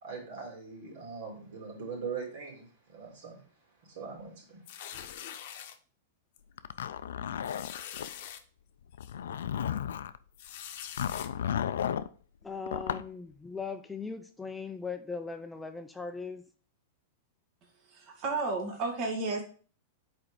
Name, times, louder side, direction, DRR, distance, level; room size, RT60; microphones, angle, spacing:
voice 1, 0.0-3.4 3.9-4.6, right 5 dB, 65° right, 3.0 m, -41 dB
sound 1, 4.7-5.8 6.4-6.5 6.8-6.9 7.4-8.4 9.0-9.1 10.3-11.3, left 10 dB, 60° left, 0.7 m, -43 dB
Zipper (clothing), 6.6-8.1 8.9-10.2 11.0-12.1 12.7-13.1, left 9 dB, 85° left, 0.3 m, -33 dB
voice 2, 12.4-16.5, left 4 dB, 10° left, 0.4 m, -39 dB
voice 3, 17.8-19.4, right 3 dB, 40° right, 1.6 m, -32 dB
4.8 x 4.3 x 4.9 m
hypercardioid pair, 140°, 0 cm